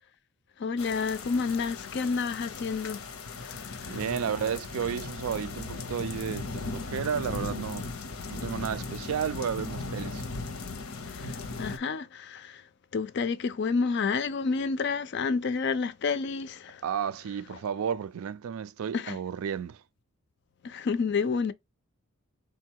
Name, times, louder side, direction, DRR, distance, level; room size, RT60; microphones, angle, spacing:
voice 1, 0.6-3.1 3.4-4.0 11.1-12.6 12.9-16.8 17.5-17.6 18.9-19.2 20.6-21.5, left 5 dB, 50° left, 0.4 m, -30 dB
sound 1, 0.8-11.8, left 3 dB, 85° left, 0.7 m, -37 dB
voice 2, 3.9-7.9 8.3-10.2 16.8-19.8, right 7 dB, 75° right, 0.3 m, -32 dB
3.7 x 2.2 x 4.4 m
head